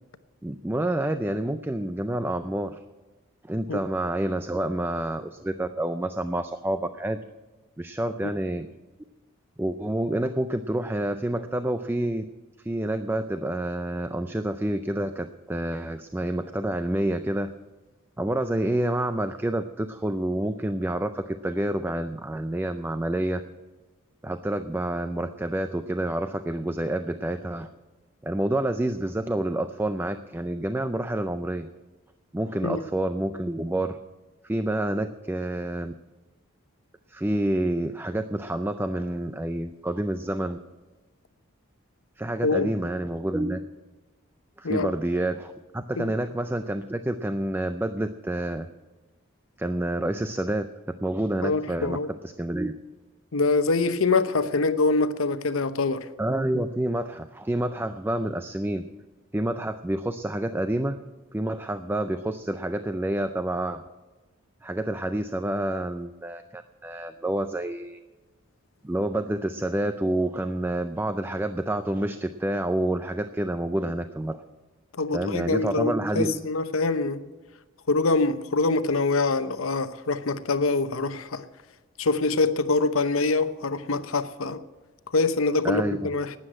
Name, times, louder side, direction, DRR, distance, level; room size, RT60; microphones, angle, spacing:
voice 1, 0.4-2.8 3.4-7.2 7.8-8.7 9.6-12.2 12.6-17.5 18.2-23.4 24.2-27.7 28.2-31.7 32.3-34.0 34.4-35.9 37.1-40.6 42.2-43.7 44.6-48.7 49.6-50.7 51.0-52.0 52.2-52.8 56.2-58.9 59.3-61.0 61.3-63.8 64.6-68.0 68.8-74.4 75.1-76.4 85.6-86.0, right 1 dB, 10° right, 9 dB, 0.4 m, -28 dB
voice 2, 51.4-52.1 53.3-56.1 74.9-77.2 77.9-81.4 82.0-84.6 85.1-86.3, left 3 dB, 80° left, 12 dB, 0.8 m, -24 dB
12.5 x 9.7 x 8.7 m, 1.2 s
head